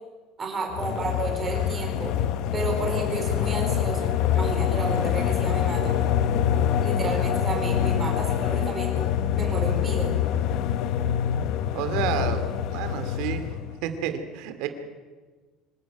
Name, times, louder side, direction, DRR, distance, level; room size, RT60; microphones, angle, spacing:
voice 1, 0.4-2.1 2.5-5.9 6.8-9.1 9.4-10.1, right 3 dB, 20° right, 2 dB, 4.5 m, -31 dB
sound 1, 0.7-13.8, left 9 dB, 55° left, 0.9 m, -25 dB
voice 2, 11.7-12.4 12.7-13.5 13.8-14.7, right 9 dB, 70° right, 8 dB, 2.5 m, -30 dB
25.5 x 12.5 x 9.1 m, 1.4 s
cardioid pair, 175°, 0 cm